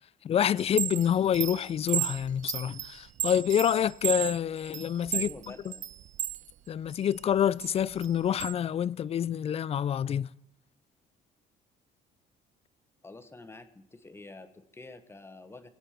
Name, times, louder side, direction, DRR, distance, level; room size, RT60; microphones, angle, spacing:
voice 1, 0.2-5.3 6.7-10.3, left 9 dB, 35° left, 0.4 m, -27 dB
Chime, 0.6-6.4 6.9-8.5, right 11 dB, 50° right, 0.5 m, -34 dB
voice 2, 5.1-5.8 13.0-15.7, left 3 dB, 15° left, 1.2 m, -47 dB
21.5 x 8.8 x 4.4 m
cardioid pair, 110°, 17 cm